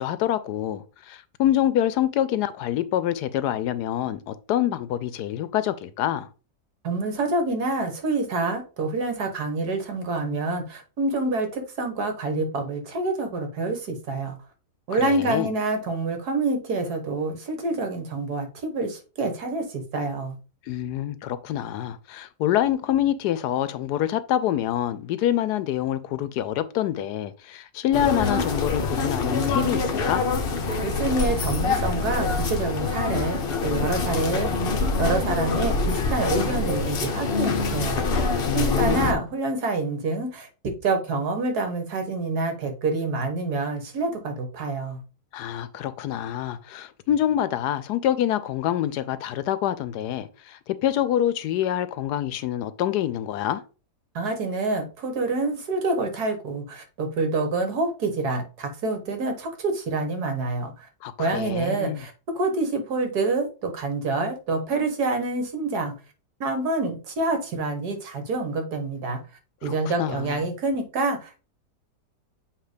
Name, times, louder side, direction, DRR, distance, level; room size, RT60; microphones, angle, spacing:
voice 1, 0.0-6.3 14.9-15.5 20.7-30.2 38.5-39.2 45.3-53.6 61.0-62.0 69.6-70.4, left 11 dB, 75° left, 1.1 m, -26 dB
voice 2, 6.8-14.4 14.9-20.4 30.8-34.5 34.8-38.2 38.5-45.0 54.2-60.9 61.2-65.9 66.4-69.2 69.6-71.4, right 3 dB, 65° right, 1.8 m, -27 dB
sound 1, 27.9-39.1, left 3 dB, 50° left, 0.7 m, -25 dB
7.5 x 2.9 x 5.0 m
omnidirectional pair, 1.8 m